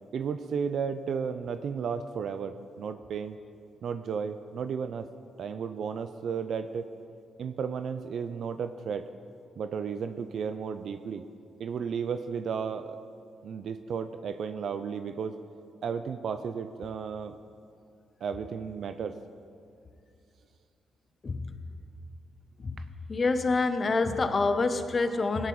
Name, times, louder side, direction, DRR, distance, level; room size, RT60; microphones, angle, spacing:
voice 1, 0.1-3.4 3.8-5.1 5.4-6.9 7.4-9.0 9.6-11.2 11.6-13.0 13.4-15.3 15.8-17.4 18.2-19.2 22.8-22.9, right 6 dB, 65° right, 10 dB, 0.4 m, -33 dB
voice 2, 21.2-21.6 22.6-22.8 23.1-25.5, left 3 dB, 40° left, 9 dB, 0.8 m, -27 dB
16.5 x 10.5 x 3.2 m, 2.5 s
supercardioid pair, 55°, 0 cm